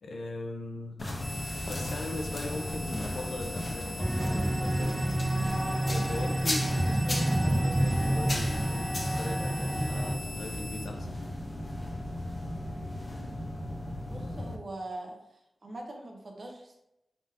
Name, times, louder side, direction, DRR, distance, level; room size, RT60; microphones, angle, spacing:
voice 1, 0.0-1.1 1.6-5.1 5.8-11.1, left 2 dB, 90° left, 3 dB, 0.5 m, -40 dB
sound 1, 1.0-14.6, left 1 dB, 40° left, 0.6 m, -36 dB
sound 2, 1.2-10.9, equal, 10° left, 0.8 m, -43 dB
sound 3, 4.0-10.2, right 1 dB, 15° right, 0.4 m, -29 dB
voice 2, 14.1-16.8, right 2 dB, 60° right, 1 dB, 0.8 m, -42 dB
3.8 x 3.6 x 2.6 m, 0.86 s
cardioid pair, 60°, 0 cm